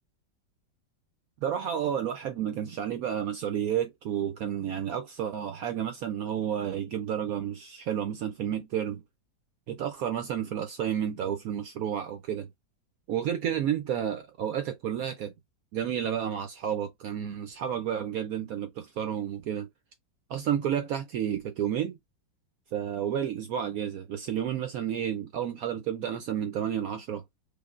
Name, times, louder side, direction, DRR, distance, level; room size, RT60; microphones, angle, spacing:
voice 1, 1.4-9.0 9.7-12.5 13.1-15.3 15.7-19.7 20.3-22.0 22.7-27.2, right 9 dB, 80° right, 0.8 m, -31 dB
5.0 x 2.1 x 2.4 m
omnidirectional pair, 2.0 m